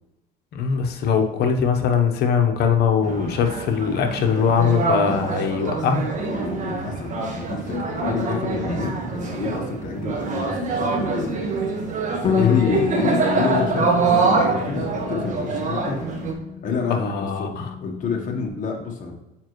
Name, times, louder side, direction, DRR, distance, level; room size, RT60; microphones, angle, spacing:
voice 1, 0.5-6.1 12.4-12.8 16.9-17.7, left 7 dB, 70° left, 5 dB, 1.0 m, -21 dB
sound 1, 3.0-16.3, right 3 dB, 50° right, 1.4 m, -25 dB
voice 2, 6.3-11.4 12.2-16.1 16.6-17.1 17.4-17.5 17.8-19.1, left 4 dB, 50° left, 1 dB, 1.2 m, -28 dB
Bass guitar, 12.2-18.5, left 7 dB, 30° left, 0.4 m, -30 dB
7.2 x 5.2 x 3.1 m, 0.95 s
cardioid pair, 110°, 17 cm